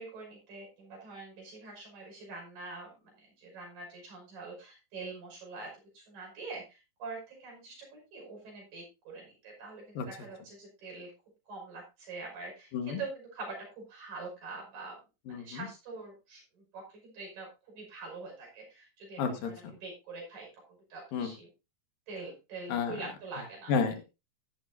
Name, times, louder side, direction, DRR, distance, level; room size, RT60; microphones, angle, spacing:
voice 1, 0.0-11.1 11.5-15.0 15.4-16.4 16.7-20.5 20.9-21.5 22.1-23.7, right 3 dB, 80° right, -1 dB, 7.5 m, -44 dB
voice 2, 15.3-15.7 19.2-19.7 21.1-21.3 22.7-22.9 23.7-24.0, left 6 dB, 85° left, 6 dB, 3.4 m, -31 dB
14.0 x 11.5 x 2.7 m, 0.27 s
omnidirectional pair, 3.9 m